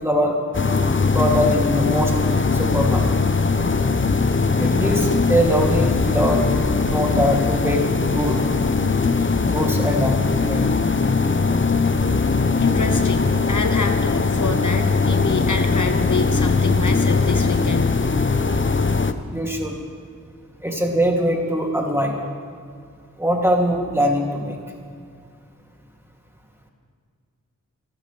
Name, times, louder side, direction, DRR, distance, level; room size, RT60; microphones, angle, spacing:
voice 1, 0.0-0.4 1.1-2.1 2.5-3.1 4.6-6.5 6.9-8.4 9.5-10.7 19.3-19.8 20.6-22.2 23.2-24.6, equal, 10° right, -1 dB, 2.7 m, -22 dB
sound 1, 0.5-19.1, left 4 dB, 35° left, 0.8 m, -20 dB
voice 2, 12.6-17.9, left 3 dB, 65° left, 7 dB, 0.9 m, -27 dB
26.0 x 13.0 x 3.4 m, 2.2 s
wide cardioid pair, 45°, 32 cm